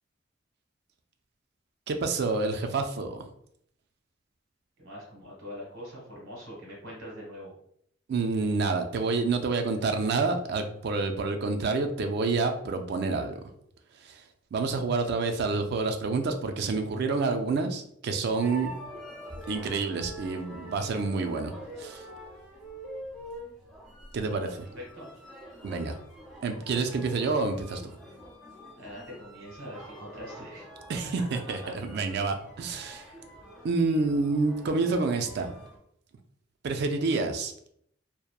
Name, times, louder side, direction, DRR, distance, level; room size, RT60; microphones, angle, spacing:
voice 1, 1.9-3.3 8.1-13.4 14.0-14.2 14.5-18.7 19.5-21.5 21.8-22.0 24.1-24.7 25.6-26.0 26.4-27.8 30.9-33.0 33.6-35.5 36.6-37.5, right 3 dB, 55° right, 6 dB, 0.3 m, -28 dB
voice 2, 4.8-7.5 24.7-25.1 28.8-30.7 31.6-31.7, equal, 90° right, -3 dB, 1.4 m, -43 dB
sound 1, 18.4-35.8, equal, ahead, 0.6 m, -45 dB
2.8 x 2.1 x 2.3 m, 0.69 s
head